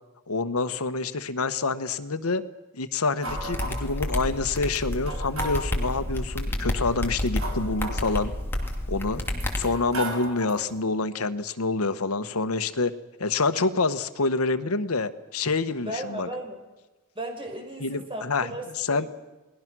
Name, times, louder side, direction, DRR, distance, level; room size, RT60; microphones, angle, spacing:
voice 1, 0.3-2.4 2.7-8.3 8.9-9.2 9.6-12.9 13.2-16.3 17.8-18.5 18.8-19.1, left 3 dB, 85° left, 12 dB, 1.2 m, -27 dB
sound 1, 3.2-4.0 4.7-4.8 5.1-6.0 6.8-8.7 9.3-10.7, right 1 dB, 75° right, 5.3 m, -36 dB
sound 2, 3.3-9.6, left 1 dB, 10° left, 2.6 m, -30 dB
voice 2, 15.8-16.6 17.1-19.1, right 1 dB, 25° right, 3 dB, 4.9 m, -36 dB
29.0 x 20.0 x 6.2 m, 1.2 s
head